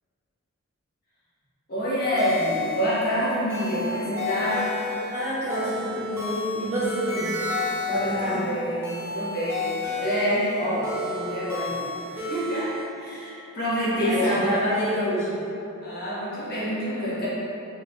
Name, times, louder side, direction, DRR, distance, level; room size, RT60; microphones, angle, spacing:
voice 1, 1.7-4.7 8.0-12.7 13.0-14.7 15.8-17.3, equal, 45° left, -10 dB, 1.1 m, -27 dB
sound 1, 2.2-12.8, left 3 dB, 10° right, 0.6 m, -32 dB
voice 2, 5.1-7.2 7.8-8.4 13.9-15.3, equal, 30° right, -13 dB, 1.4 m, -27 dB
4.5 x 3.4 x 2.3 m, 3.0 s
head